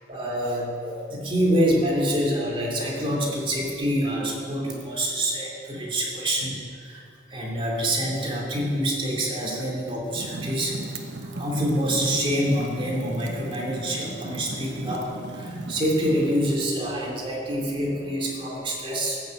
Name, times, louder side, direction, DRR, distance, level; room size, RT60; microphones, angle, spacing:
voice 1, 0.1-7.0 7.3-10.8 11.2-19.2, equal, 30° right, -2 dB, 2.7 m, -26 dB
Fire, 10.1-16.7, right 2 dB, 75° right, 1.1 m, -37 dB
14.5 x 6.7 x 8.4 m, 2.5 s
head